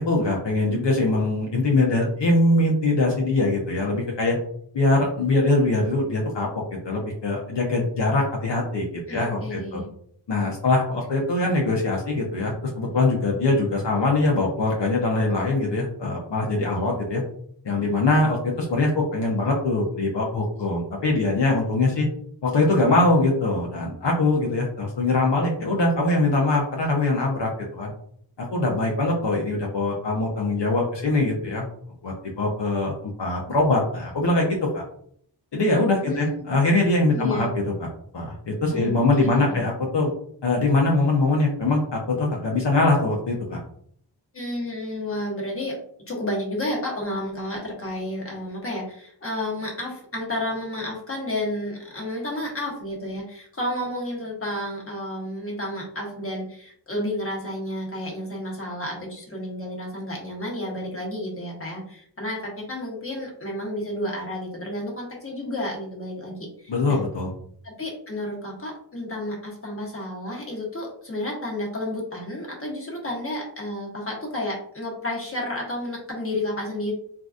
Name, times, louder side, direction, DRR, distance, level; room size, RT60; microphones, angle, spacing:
voice 1, 0.0-4.4 4.7-6.5 6.8-9.8 10.3-17.2 17.6-22.1 22.4-27.9 28.4-31.7 32.0-34.8 35.5-37.5 37.8-37.9 38.1-40.1 40.4-43.6 66.7-67.3, left 2 dB, 70° left, -1 dB, 0.8 m, -22 dB
voice 2, 9.1-9.9 36.0-36.6 37.1-37.5 38.7-38.9 39.2-39.5 44.3-45.8 46.1-67.0 67.6-76.9, left 1 dB, 30° left, -2 dB, 1.1 m, -31 dB
3.7 x 2.6 x 2.4 m, 0.63 s
wide cardioid pair, 95°, 44 cm